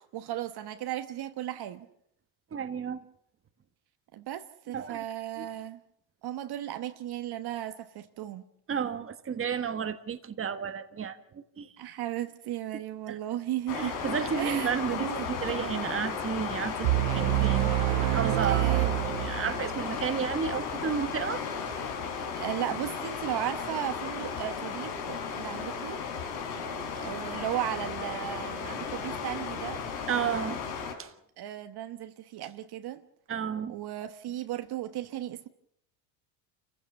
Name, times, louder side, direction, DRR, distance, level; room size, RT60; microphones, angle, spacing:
voice 1, 0.0-1.9 4.1-5.8 6.2-8.4 11.8-14.0 14.4-15.3 18.4-19.0 22.4-26.0 27.0-29.8 31.4-33.0 33.7-35.5, right 12 dB, 50° right, 1.3 m, -35 dB
voice 2, 2.5-3.0 4.7-5.0 5.4-5.5 8.7-11.7 13.1-13.2 13.7-17.7 18.1-18.7 19.2-21.4 30.1-30.6 31.0-31.1 33.3-33.8, right 7 dB, 25° right, 1.4 m, -32 dB
sound 1, 13.7-30.9, left 6 dB, 90° left, 4.7 m, -35 dB
sound 2, 16.8-19.8, right 21 dB, 65° right, 0.8 m, -27 dB
28.0 x 15.5 x 7.2 m
supercardioid pair, 105°, 50 cm